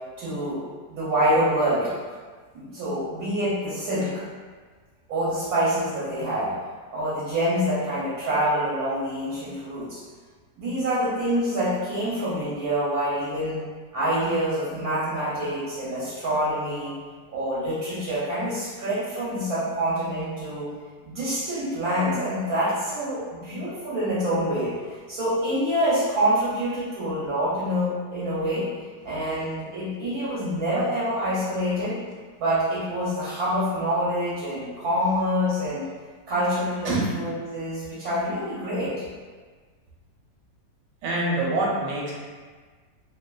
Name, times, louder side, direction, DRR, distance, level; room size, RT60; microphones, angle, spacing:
voice 1, 0.2-0.6 0.9-1.9 2.5-4.2 5.1-6.5 6.9-10.0 10.6-13.6 13.9-16.9 17.3-20.7 21.0-28.6 29.0-32.0 32.4-35.9 36.3-38.9, equal, 65° right, -10 dB, 1.1 m, -26 dB
voice 2, 36.8-37.2 41.0-42.1, right 2 dB, 85° right, -4 dB, 1.3 m, -25 dB
2.7 x 2.3 x 2.2 m, 1.5 s
omnidirectional pair, 1.9 m